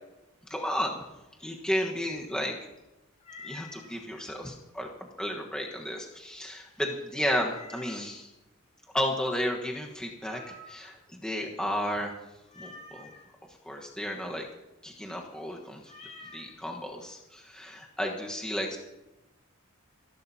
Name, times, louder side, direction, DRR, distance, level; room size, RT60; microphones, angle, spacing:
voice 1, 0.5-1.0 1.4-2.5 3.4-4.9 5.2-8.3 8.9-12.1 12.6-13.1 13.6-14.5 14.8-15.9 16.3-18.8, equal, 5° left, -1 dB, 1.2 m, -33 dB
Meow, 3.2-3.9 7.4-8.2 10.2-11.0 12.5-13.2 15.8-16.5, left 2 dB, 35° left, 3.3 m, -47 dB
28.0 x 11.5 x 2.8 m, 1.0 s
head